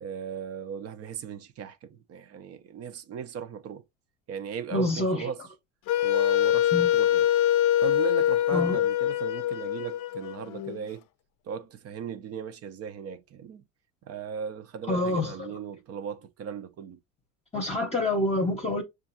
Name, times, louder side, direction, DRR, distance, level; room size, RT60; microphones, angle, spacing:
voice 1, 0.0-3.8 4.3-5.4 6.0-7.3 7.8-11.0 11.4-13.6 14.1-17.0 17.7-17.9, right 7 dB, 45° right, 0.7 m, -37 dB
voice 2, 4.7-5.3 6.7-6.9 8.5-8.8 14.9-15.5 17.5-18.8, left 1 dB, 15° left, 0.9 m, -27 dB
Wind instrument woodwind instrument, 5.9-10.8, left 11 dB, 55° left, 0.6 m, -24 dB
6.6 x 2.5 x 2.7 m
supercardioid pair, 110°, 35 cm